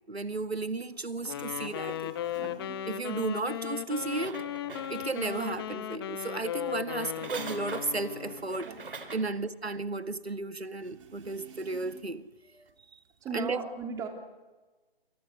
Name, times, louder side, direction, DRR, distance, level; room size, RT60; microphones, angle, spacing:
voice 1, 0.1-2.1 2.8-4.5 4.9-8.7 9.1-12.2 13.3-13.6, right 3 dB, 90° right, 1.8 m, -34 dB
sound 1, 0.9-1.0 1.2-3.4 3.7-6.7 6.9-9.9 10.2-10.3 10.8-12.3 12.6-13.4, right 6 dB, 30° right, 3.5 m, -52 dB
Wind instrument woodwind instrument, 1.2-8.5, left 11 dB, 25° left, 1.1 m, -36 dB
sound 2, 3.9-5.4 7.0-9.4 9.9-10.0, right 4 dB, 55° right, 3.8 m, -43 dB
voice 2, 13.2-14.1, right 5 dB, 10° right, 3.3 m, -36 dB
29.0 x 27.5 x 6.5 m
figure-of-eight pair, 145°, 31 cm